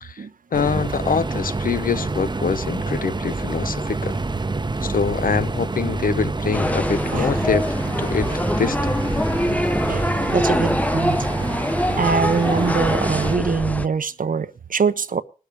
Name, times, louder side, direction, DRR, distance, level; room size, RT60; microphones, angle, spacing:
voice 1, 0.5-4.1 4.8-7.6 8.0-9.0, left 6 dB, 75° left, 0.5 m, -24 dB
sound 1, 0.5-13.4, right 3 dB, 30° right, 0.7 m, -27 dB
sound 2, 6.5-13.9, left 1 dB, 10° left, 0.5 m, -24 dB
voice 2, 9.9-11.3 12.0-15.2, right 5 dB, 70° right, 0.7 m, -23 dB
19.5 x 7.0 x 4.8 m
cardioid pair, 50°, 15 cm